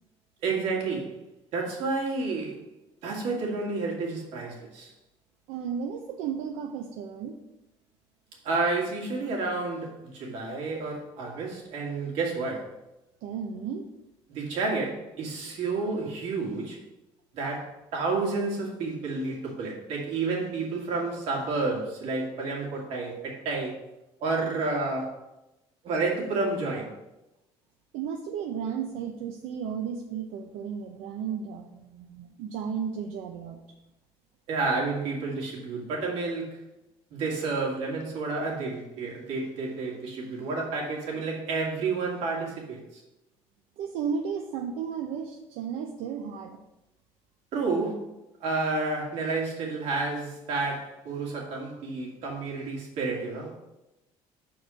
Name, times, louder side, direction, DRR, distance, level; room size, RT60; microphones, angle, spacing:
voice 1, 0.4-1.2 1.5-2.6 3.0-4.9 8.4-12.7 14.3-16.8 17.3-23.8 24.2-25.2 25.8-26.9 34.5-36.6 37.1-43.0 47.5-48.1 48.4-53.5, right 3 dB, 65° right, -2 dB, 2.3 m, -30 dB
voice 2, 5.5-7.4 13.2-13.8 27.9-33.6 43.8-46.6, right 7 dB, 85° right, 3 dB, 0.7 m, -34 dB
6.3 x 4.7 x 6.2 m, 0.95 s
cardioid pair, 165°, 11 cm